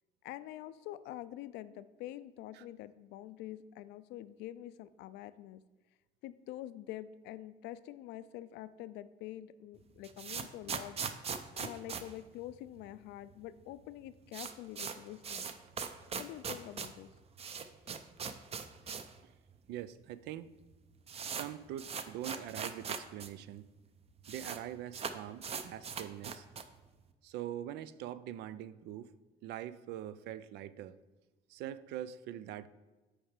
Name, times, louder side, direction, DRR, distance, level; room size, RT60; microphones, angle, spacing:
voice 1, 0.2-5.6 6.2-11.0 11.6-15.5 16.1-17.1, left 13 dB, 85° left, 14 dB, 0.4 m, -46 dB
sound 1, 9.8-13.0 13.3-13.4 13.6-13.7 14.0-19.2 19.5-19.6 20.3-20.4 20.6-23.3 23.6-23.7 23.9-24.6 24.9-26.8, right 6 dB, 35° right, 0.6 m, -41 dB
voice 2, 19.7-20.5 21.3-23.7 24.3-26.5 27.2-29.1 29.4-31.0 31.5-32.7, right 11 dB, 85° right, 16 dB, 0.4 m, -43 dB
6.2 x 4.7 x 6.4 m, 1.2 s
cardioid pair, 110°, 17 cm